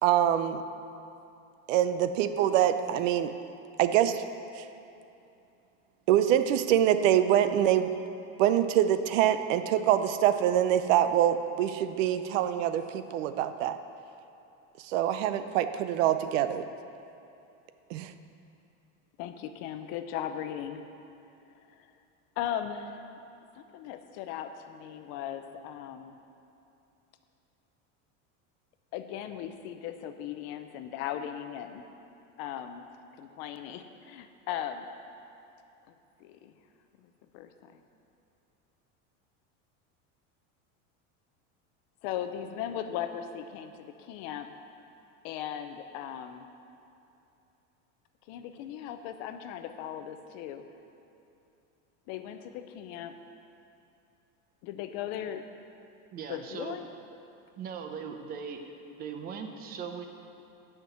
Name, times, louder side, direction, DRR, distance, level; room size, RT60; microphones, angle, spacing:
voice 1, 0.0-0.6 1.7-3.3 3.8-4.2 4.6-4.7 6.1-7.9 8.4-13.8 14.9-16.7 17.9-18.1, right 11 dB, 85° right, 11 dB, 0.7 m, -25 dB
voice 2, 19.2-20.8 21.7-21.9 22.4-23.2 23.5-26.2 28.9-31.8 32.4-32.9 33.2-34.9 35.9-36.0 36.2-36.5 37.0-37.8 42.0-44.5 45.2-46.5 48.3-50.6 52.1-53.1 54.6-55.4 56.3-56.9, left 10 dB, 45° left, 8 dB, 0.5 m, -38 dB
voice 3, 56.1-56.8 57.6-58.6 59.0-60.1, right 6 dB, 25° right, 5 dB, 0.6 m, -39 dB
8.2 x 5.9 x 7.8 m, 2.7 s
cardioid pair, 170°, 37 cm